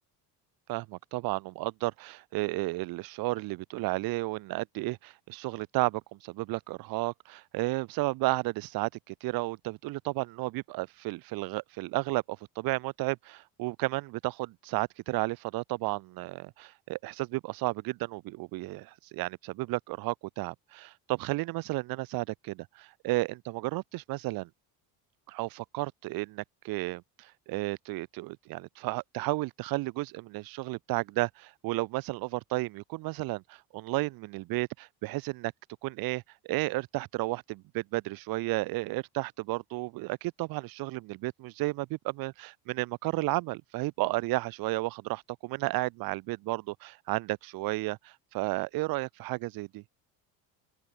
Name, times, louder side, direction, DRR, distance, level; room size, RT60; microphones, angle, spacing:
voice 1, 0.7-24.5 25.3-35.5 35.8-49.8, right 21 dB, 60° right, 1.0 m, -33 dB
open air
cardioid pair, 165°, 40 cm